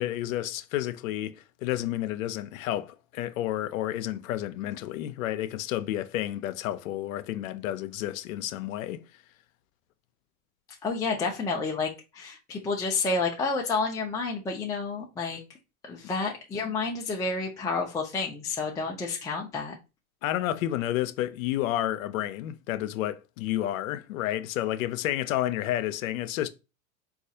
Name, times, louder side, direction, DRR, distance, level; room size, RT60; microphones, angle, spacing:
voice 1, 0.0-9.0 20.2-26.5, left 13 dB, 75° left, 0.5 m, -30 dB
voice 2, 10.8-15.4 15.8-19.7, left 4 dB, 10° left, 0.4 m, -30 dB
4.0 x 2.4 x 2.6 m
hypercardioid pair, 105°, 41 cm